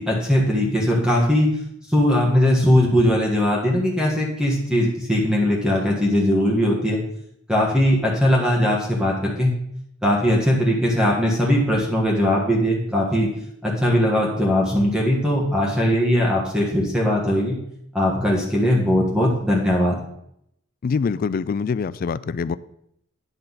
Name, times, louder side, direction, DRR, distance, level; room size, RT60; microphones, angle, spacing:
voice 1, 0.0-1.5 1.9-7.0 7.5-9.5 10.0-13.3 13.6-17.6 17.9-20.0, equal, 5° right, -3 dB, 1.4 m, -20 dB
voice 2, 20.8-22.6, left 5 dB, 45° left, 17 dB, 0.3 m, -24 dB
9.7 x 6.6 x 4.0 m, 0.75 s
head